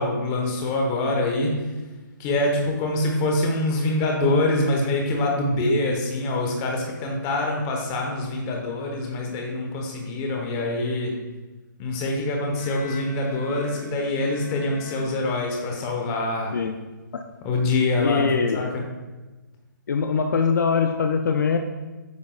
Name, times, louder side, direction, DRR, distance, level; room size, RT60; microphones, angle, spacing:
voice 1, 0.0-1.5 2.2-11.1 11.8-16.6 17.4-18.2 18.5-18.8, left 2 dB, 20° left, 1 dB, 1.1 m, -25 dB
Bowed string instrument, 12.5-15.9, equal, 45° left, 1.7 m, -42 dB
voice 2, 18.0-18.7 19.9-21.6, left 5 dB, 60° left, 6 dB, 0.5 m, -22 dB
9.4 x 5.2 x 2.4 m, 1.2 s
hypercardioid pair, 155°, 11 cm